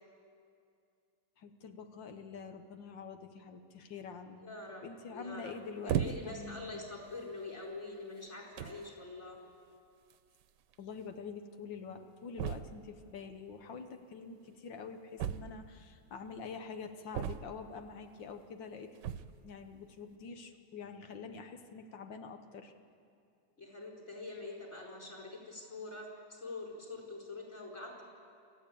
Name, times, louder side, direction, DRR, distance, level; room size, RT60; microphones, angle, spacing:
voice 1, 1.4-6.9 10.8-19.0 19.4-22.7, left 5 dB, 85° left, 6 dB, 1.9 m, -46 dB
voice 2, 4.4-4.8 5.1-5.6 5.8-9.4 23.6-28.0, left 2 dB, 35° left, -3 dB, 4.9 m, -45 dB
sound 1, 5.9-6.5 7.3-7.4 8.2-8.3 8.6-8.9 10.1-10.2 10.4-10.5 10.7-10.8 12.4-12.9 15.2-15.9 17.1-17.8 19.0-19.4, right 9 dB, 75° right, 1.3 m, -36 dB
27.0 x 14.5 x 8.5 m, 2.4 s
omnidirectional pair, 2.0 m